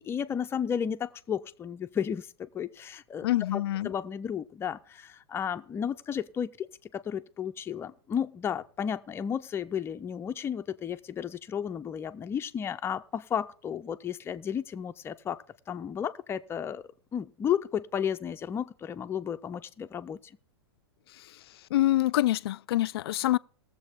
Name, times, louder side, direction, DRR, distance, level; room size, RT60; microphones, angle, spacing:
voice 1, 0.0-6.7 6.9-15.4 15.7-16.8 17.1-20.2, left 8 dB, 20° left, 0.5 m, -33 dB
voice 2, 3.2-3.9 21.7-23.4, left 15 dB, 70° left, 0.4 m, -25 dB
19.0 x 7.4 x 3.6 m
hypercardioid pair, 125°, 14 cm